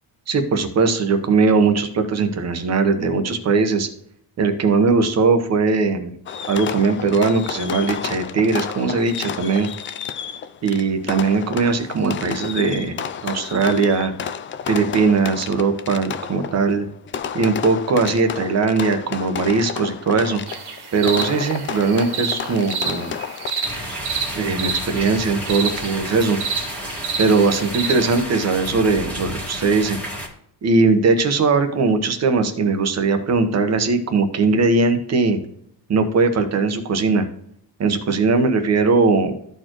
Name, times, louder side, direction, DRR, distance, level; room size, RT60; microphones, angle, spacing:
voice 1, 0.3-3.9 4.4-6.1 6.5-9.7 10.6-13.0 13.2-14.1 14.7-16.9 17.3-20.4 20.9-23.2 24.3-26.4 27.2-30.0 30.6-35.4 35.9-37.2 37.8-39.3, right 4 dB, 40° right, 7 dB, 1.2 m, -19 dB
Fireworks, 6.3-24.0, left 8 dB, 30° left, 0.4 m, -31 dB
sound 1, 20.5-28.2, right 5 dB, 65° right, 2.0 m, -29 dB
sound 2, 23.6-30.3, left 1 dB, 5° left, 1.8 m, -32 dB
13.5 x 4.5 x 3.1 m, 0.70 s
cardioid pair, 130°, 43 cm